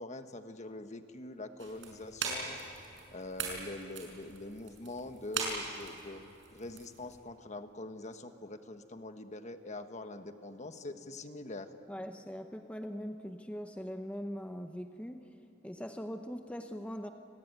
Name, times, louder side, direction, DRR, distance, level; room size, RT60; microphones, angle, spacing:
voice 1, 0.0-2.6 3.1-11.7, left 2 dB, 40° left, 8 dB, 1.3 m, -44 dB
sound 1, 1.6-7.2, right 4 dB, 75° right, 6.1 m, -41 dB
voice 2, 11.9-15.4 15.6-17.1, equal, 5° left, 6 dB, 0.8 m, -41 dB
29.5 x 19.5 x 9.4 m, 2.9 s
head